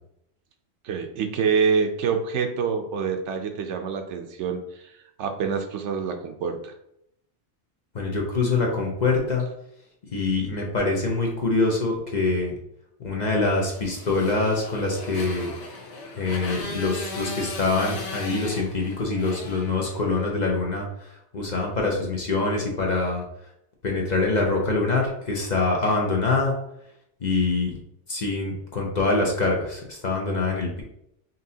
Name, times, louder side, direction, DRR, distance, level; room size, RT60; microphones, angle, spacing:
voice 1, 0.8-4.9 5.2-6.7, right 5 dB, 75° right, 6 dB, 0.9 m, -26 dB
voice 2, 7.9-9.5 10.1-12.5 13.0-15.5 16.1-23.2 23.8-26.5 27.2-27.7 28.1-30.8, left 3 dB, 45° left, -1 dB, 0.7 m, -25 dB
Motorcycle, 13.6-20.3, left 3 dB, 70° left, 1.1 m, -37 dB
5.5 x 2.6 x 2.7 m, 0.78 s
omnidirectional pair, 1.2 m